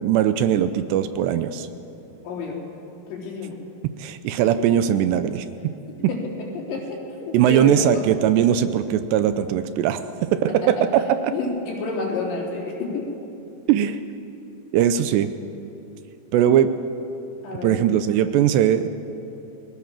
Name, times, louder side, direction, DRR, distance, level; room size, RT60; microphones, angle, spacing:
voice 1, 0.0-1.7 4.0-5.5 7.3-10.0 10.3-11.3 13.7-14.0 14.7-15.3 16.3-16.7 17.6-18.9, right 10 dB, 80° right, 11 dB, 2.7 m, -20 dB
voice 2, 2.2-2.6 3.1-3.6 6.1-6.2 6.5-8.0 10.6-10.8 11.3-13.1 17.4-17.8, left 3 dB, 70° left, -1 dB, 6.0 m, -29 dB
28.5 x 20.5 x 7.4 m, 2.9 s
omnidirectional pair, 5.3 m